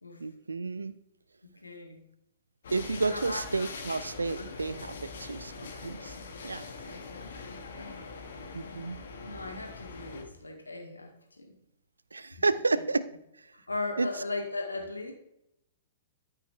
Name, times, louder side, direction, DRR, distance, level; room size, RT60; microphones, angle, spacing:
voice 1, 0.2-0.9 2.7-6.1 6.4-6.8 8.5-9.0 12.1-13.1 14.0-14.1, right 3 dB, 85° right, 14 dB, 0.5 m, -31 dB
voice 2, 1.6-2.0 3.1-3.4 4.4-4.5 6.9-8.0 9.2-11.5 12.7-12.8 13.7-15.1, left 2 dB, 90° left, 1 dB, 2.1 m, -38 dB
sound 1, 2.6-10.2, left 4 dB, 65° left, 1.6 m, -43 dB
13.5 x 5.6 x 3.4 m, 0.82 s
figure-of-eight pair, 115°, 0 cm